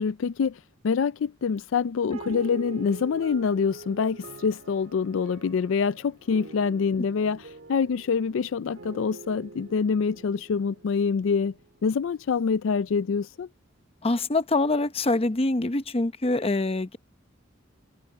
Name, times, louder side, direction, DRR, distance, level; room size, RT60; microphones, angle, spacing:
voice 1, 0.0-11.5 11.8-13.5, left 5 dB, 70° left, 0.4 m, -26 dB
sound 1, 2.1-11.9, right 3 dB, 65° right, 1.8 m, -44 dB
voice 2, 14.0-17.0, left 2 dB, 30° left, 0.8 m, -25 dB
head